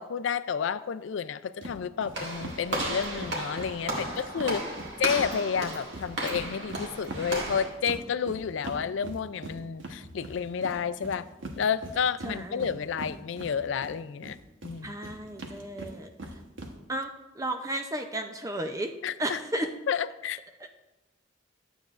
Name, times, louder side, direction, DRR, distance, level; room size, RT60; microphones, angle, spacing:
voice 1, 0.0-4.6 5.0-11.3 11.6-14.4 14.6-15.0 19.0-20.4, left 7 dB, 75° left, 14 dB, 0.4 m, -31 dB
sound 1, 1.6-1.8 2.0-2.1 2.4-5.3 5.6-13.9 14.2-16.7, right 1 dB, 75° right, 1.1 m, -41 dB
Walk footsteps / Slam, 2.1-7.7, right 1 dB, 60° right, 1.9 m, -34 dB
voice 2, 4.0-4.8 12.2-12.7 14.8-16.1 16.9-19.7, right 1 dB, 15° right, 6 dB, 0.5 m, -34 dB
11.5 x 8.0 x 2.5 m, 1.0 s
head